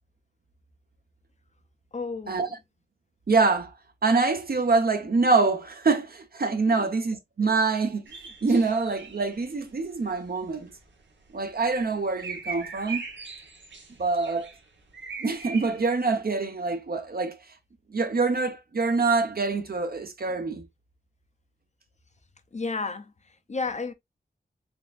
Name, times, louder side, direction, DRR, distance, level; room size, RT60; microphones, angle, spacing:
voice 1, 1.9-2.6 6.7-6.9 22.5-23.9, left 4 dB, 40° left, 0.6 m, -33 dB
voice 2, 3.3-3.7 4.0-8.0 8.4-10.7 11.3-13.0 14.0-14.5 15.2-17.4 17.9-20.6, right 3 dB, 55° right, 0.9 m, -25 dB
sound 1, 8.1-15.9, right 5 dB, 85° right, 1.2 m, -40 dB
4.5 x 3.5 x 2.4 m
wide cardioid pair, 100°, 18 cm